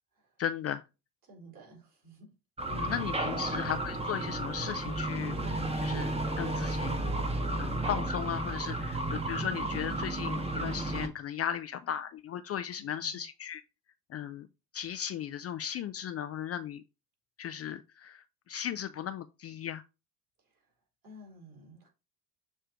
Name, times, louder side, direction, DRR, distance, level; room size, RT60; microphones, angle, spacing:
voice 1, 0.4-0.8 2.7-7.0 7.6-13.6 14.1-14.5 14.7-16.8 17.4-19.8, left 9 dB, 35° left, 0.4 m, -36 dB
voice 2, 1.2-2.3 3.3-3.6 12.8-13.2 20.4-20.7 21.0-21.9, right 1 dB, 45° right, 4.0 m, -53 dB
sound 1, 2.6-11.1, right 1 dB, 15° right, 1.2 m, -33 dB
6.6 x 3.3 x 4.5 m
hypercardioid pair, 55°, 45 cm